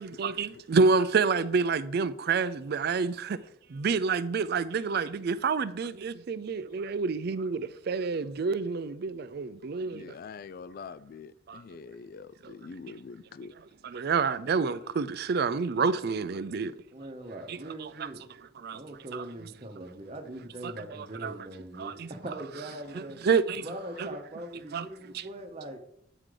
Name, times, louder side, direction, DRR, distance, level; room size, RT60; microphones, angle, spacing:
voice 1, 0.0-3.4 3.7-10.1 11.5-11.6 12.4-12.5 13.8-16.7 17.5-18.1 18.6-18.8 19.1-19.2 19.8-19.9 20.6-21.3 21.8-22.1 22.9-23.7 24.0-24.1 24.7-24.9 25.1-25.3, right 4 dB, 50° right, 0.4 m, -28 dB
voice 2, 9.9-13.5, left 5 dB, 45° left, 0.3 m, -44 dB
voice 3, 16.9-18.2 18.7-23.2 23.6-25.8, right 1 dB, 30° right, 0.9 m, -41 dB
8.9 x 3.8 x 4.9 m
head